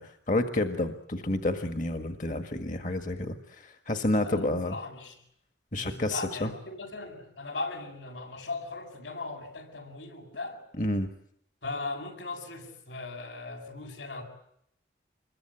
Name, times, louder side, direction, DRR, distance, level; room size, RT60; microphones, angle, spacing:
voice 1, 0.0-4.8 5.7-6.5 10.8-11.1, left 1 dB, 45° left, 6 dB, 1.7 m, -30 dB
voice 2, 4.2-5.2 5.7-10.6 11.6-14.2, left 3 dB, 90° left, 3 dB, 7.8 m, -38 dB
27.0 x 22.5 x 8.9 m, 0.72 s
head